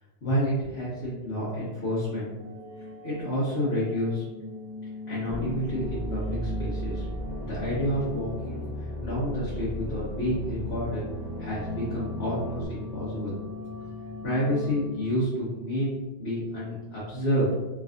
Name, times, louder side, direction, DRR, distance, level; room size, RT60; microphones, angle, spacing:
voice 1, 0.2-2.3 3.0-4.2 5.1-7.1 7.4-11.0 11.4-13.4 14.2-17.5, equal, 65° left, -10 dB, 1.4 m, -29 dB
sound 1, 2.4-15.2, left 3 dB, 45° left, 1.4 m, -41 dB
sound 2, 5.3-12.6, equal, 15° left, 0.4 m, -35 dB
3.5 x 3.1 x 2.4 m, 1.1 s
omnidirectional pair, 1.2 m